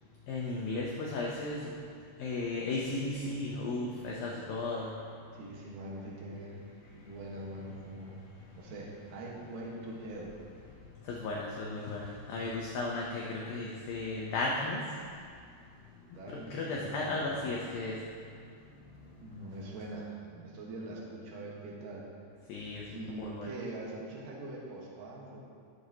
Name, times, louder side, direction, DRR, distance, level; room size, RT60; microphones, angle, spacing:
voice 1, 0.3-1.7 2.2-4.9 11.1-14.8 16.3-18.0 22.5-22.8 23.2-23.5, left 2 dB, 85° left, -3 dB, 2.0 m, -35 dB
voice 2, 5.3-6.6 6.9-8.2 8.6-10.4 16.1-17.5 19.2-22.1 22.9-25.4, right 2 dB, 60° right, -4 dB, 2.5 m, -43 dB
15.0 x 7.3 x 2.9 m, 2.3 s
omnidirectional pair, 5.4 m